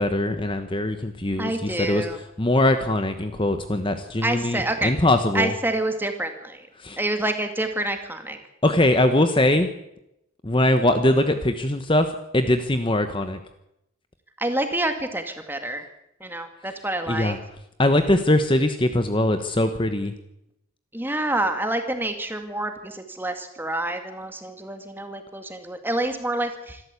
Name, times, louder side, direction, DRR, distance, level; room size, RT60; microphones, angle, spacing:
voice 1, 0.0-2.1 2.4-5.5 6.8-7.0 8.6-9.7 10.4-13.4 17.1-17.4 17.8-20.1, left 1 dB, 25° left, 8 dB, 1.1 m, -21 dB
voice 2, 1.4-2.2 4.2-4.9 5.3-6.7 7.0-8.4 14.4-15.8 16.2-17.4 20.9-26.8, right 1 dB, 10° right, 6 dB, 2.1 m, -27 dB
26.5 x 13.0 x 8.4 m, 0.83 s
head